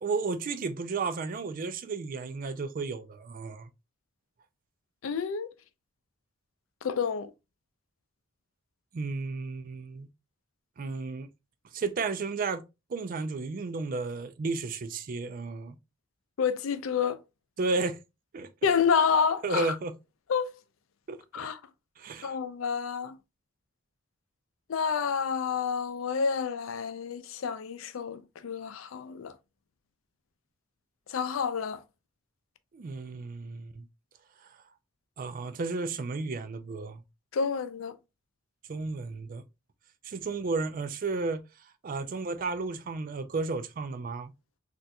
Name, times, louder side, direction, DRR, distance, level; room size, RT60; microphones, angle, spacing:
voice 1, 0.0-3.7 8.9-10.1 10.8-11.3 11.7-12.6 12.9-15.8 17.6-18.0 18.3-18.7 19.4-19.9 21.1-21.5 22.0-22.4 32.7-33.8 35.2-37.0 38.7-39.4 40.0-41.4 41.8-44.3, right 3 dB, 45° right, 0.4 m, -33 dB
voice 2, 5.0-5.5 6.8-7.3 16.4-17.2 18.6-19.8 20.3-20.5 21.3-21.6 22.2-23.2 24.7-29.3 31.1-31.8 37.3-38.0, left 6 dB, 90° left, 0.4 m, -29 dB
4.1 x 2.5 x 2.2 m
head